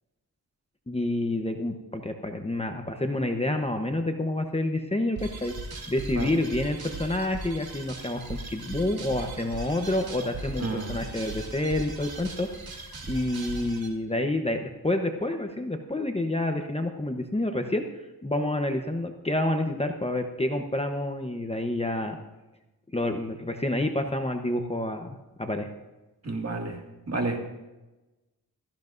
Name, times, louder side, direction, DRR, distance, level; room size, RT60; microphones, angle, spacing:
voice 1, 0.9-5.5 5.9-12.5 13.1-17.8 18.2-22.2 22.9-25.7, left 1 dB, 15° left, 5 dB, 1.0 m, -28 dB
sound 1, 5.2-13.9, right 3 dB, 70° right, 2.4 m, -39 dB
voice 2, 10.6-11.0 26.2-26.8 27.1-27.4, right 3 dB, 40° right, 2 dB, 2.2 m, -30 dB
16.5 x 14.5 x 2.6 m, 1.1 s
wide cardioid pair, 80°, 38 cm